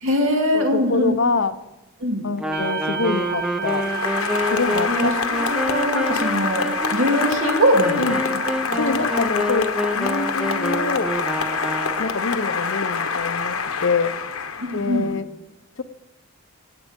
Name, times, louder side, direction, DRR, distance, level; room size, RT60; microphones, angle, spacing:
voice 1, 0.0-1.1 2.0-2.3 4.9-8.1 8.7-8.8 14.6-15.1, equal, 65° right, 2 dB, 2.4 m, -22 dB
voice 2, 0.5-1.6 2.2-3.9 4.5-5.2 8.0-8.2 8.7-11.2 12.0-14.1 14.7-15.3 15.8-15.9, left 4 dB, 60° left, 12 dB, 0.6 m, -25 dB
Wind instrument woodwind instrument, 2.4-12.3, left 1 dB, 5° right, 0.5 m, -28 dB
sound 1, 2.5-13.5, right 6 dB, 40° right, 1.3 m, -33 dB
Applause, 3.6-15.1, left 5 dB, 80° left, 1.1 m, -26 dB
15.5 x 9.2 x 5.2 m, 0.98 s
head